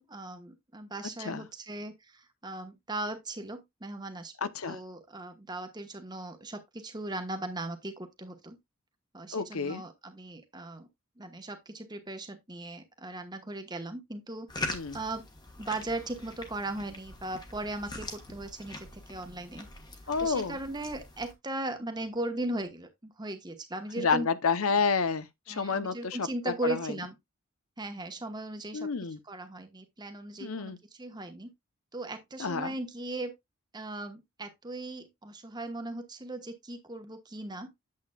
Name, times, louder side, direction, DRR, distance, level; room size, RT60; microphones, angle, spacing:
voice 1, 0.0-8.6 9.1-10.9 11.2-14.5 14.9-15.3 15.6-19.7 20.2-24.3 25.5-27.2 27.8-28.9 29.2-31.5 31.9-33.3 33.7-37.7, right 2 dB, 20° right, 1.1 m, -38 dB
voice 2, 4.4-4.8 9.3-9.8 14.7-15.0 20.1-20.5 24.0-26.3 26.6-26.9 28.7-29.2 30.4-30.8 32.4-32.7, left 5 dB, 75° left, 0.8 m, -29 dB
sound 1, 14.5-21.3, left 2 dB, 20° left, 1.3 m, -42 dB
8.6 x 7.9 x 2.3 m
head